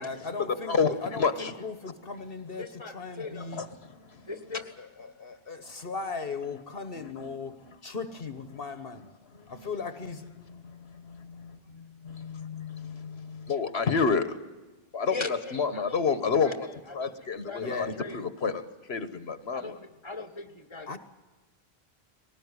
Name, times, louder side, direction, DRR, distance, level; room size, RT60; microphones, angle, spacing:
voice 1, 0.0-2.6 2.9-3.6 4.1-4.2 4.5-7.5 7.8-9.1 9.5-10.2 17.6-18.0 20.9-21.0, left 4 dB, 65° left, 9 dB, 1.4 m, -37 dB
voice 2, 0.6-1.3 2.6-3.5 4.3-4.7 15.1-16.0 16.4-18.2 19.5-21.0, left 3 dB, 25° left, 9 dB, 1.6 m, -40 dB
voice 3, 1.2-1.5 3.5-3.7 7.0-7.3 9.4-9.5 10.6-14.4 14.9-15.1 15.5-16.5 16.9-18.6 18.9-19.7, left 5 dB, 80° left, 11 dB, 1.5 m, -29 dB
20.5 x 18.5 x 9.7 m, 1.2 s
omnidirectional pair, 1.1 m